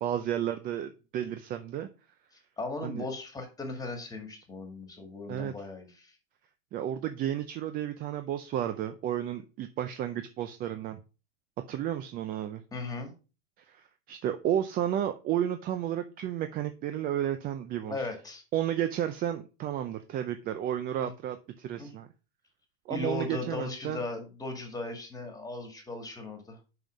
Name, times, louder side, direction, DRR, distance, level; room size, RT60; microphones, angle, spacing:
voice 1, 0.0-1.9 2.8-3.1 5.3-5.5 6.7-11.0 11.7-12.6 13.6-18.1 18.5-22.1 22.9-24.0, right 11 dB, 30° right, 9 dB, 0.5 m, -32 dB
voice 2, 2.3-6.2 12.7-13.1 17.9-18.4 21.0-21.1 21.7-21.9 22.9-26.6, left 2 dB, 10° left, 4 dB, 1.9 m, -37 dB
5.6 x 5.6 x 5.1 m, 0.33 s
supercardioid pair, 135°, 31 cm